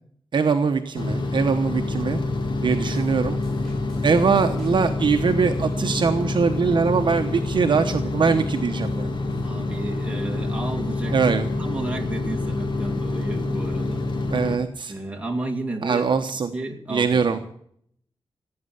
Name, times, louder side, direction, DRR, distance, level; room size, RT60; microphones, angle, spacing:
voice 1, 0.3-2.2 2.6-3.4 4.0-9.1 11.1-11.5 14.3-14.9 15.8-16.5 16.9-17.4, right 5 dB, 55° right, 6 dB, 1.0 m, -22 dB
sound 1, 0.9-14.6, left 2 dB, 55° left, 1.9 m, -27 dB
sound 2, 2.9-9.5, equal, 5° left, 7.7 m, -42 dB
voice 2, 9.4-14.1 14.9-16.1 16.5-17.5, right 2 dB, 15° right, 2 dB, 2.4 m, -32 dB
17.0 x 8.9 x 8.0 m, 0.65 s
wide cardioid pair, 155°, 10 cm